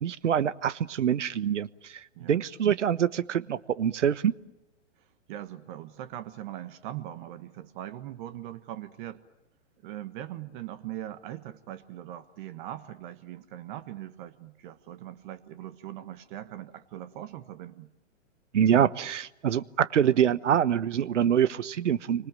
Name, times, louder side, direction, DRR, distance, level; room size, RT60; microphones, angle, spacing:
voice 1, 0.0-4.3 18.5-22.3, right 9 dB, 75° right, 17 dB, 1.2 m, -25 dB
voice 2, 5.0-9.2 9.8-17.9, right 12 dB, 45° right, 10 dB, 1.4 m, -41 dB
29.0 x 25.5 x 7.6 m, 0.93 s
hypercardioid pair, 125°, 36 cm